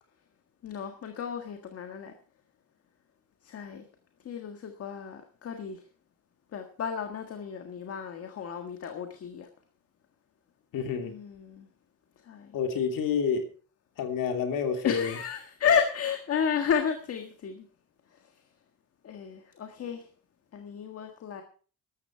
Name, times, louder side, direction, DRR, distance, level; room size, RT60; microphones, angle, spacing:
voice 1, 0.6-2.1 3.4-3.8 4.3-5.8 6.5-9.5 11.0-11.7 12.3-12.5 14.8-17.7 19.0-20.0 20.5-21.4, left 7 dB, 45° left, 5 dB, 1.6 m, -32 dB
voice 2, 10.7-11.1 12.5-13.5 14.0-15.2, left 6 dB, 70° left, 5 dB, 3.0 m, -28 dB
14.0 x 12.5 x 4.5 m, 0.39 s
cardioid pair, 180°, 34 cm